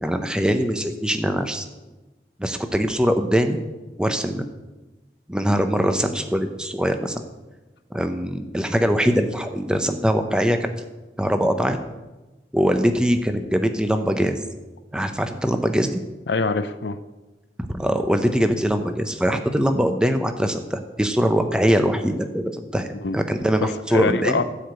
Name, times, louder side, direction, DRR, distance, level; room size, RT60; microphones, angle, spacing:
voice 1, 0.0-1.7 2.4-3.6 4.0-4.5 5.3-7.2 7.9-10.7 11.2-11.8 12.5-14.4 14.9-16.0 17.7-24.4, equal, 5° right, 6 dB, 0.7 m, -22 dB
voice 2, 16.3-17.0 23.0-23.2 23.6-24.4, left 3 dB, 80° left, 11 dB, 0.7 m, -24 dB
14.0 x 5.0 x 8.0 m, 1.1 s
head